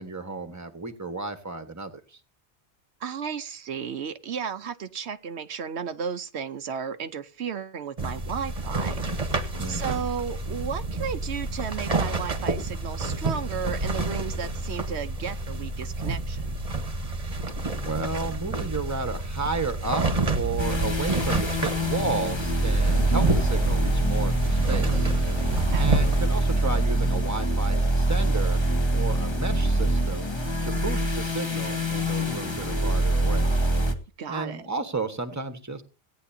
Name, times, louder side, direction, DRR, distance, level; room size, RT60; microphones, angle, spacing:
voice 1, 0.0-2.2 9.6-10.1 17.8-25.4 25.8-28.6 28.9-30.3 30.6-33.5 34.3-35.8, right 3 dB, 15° right, 1.3 m, -33 dB
voice 2, 3.0-9.0 9.7-16.6 23.1-23.3 25.7-25.9 30.7-30.8 34.2-34.7, right 7 dB, 75° right, 1.0 m, -34 dB
sound 1, 8.0-26.3, right 3 dB, 35° right, 1.3 m, -29 dB
sound 2, 20.6-33.9, right 1 dB, 25° left, 1.4 m, -24 dB
17.5 x 9.6 x 2.8 m
omnidirectional pair, 1.1 m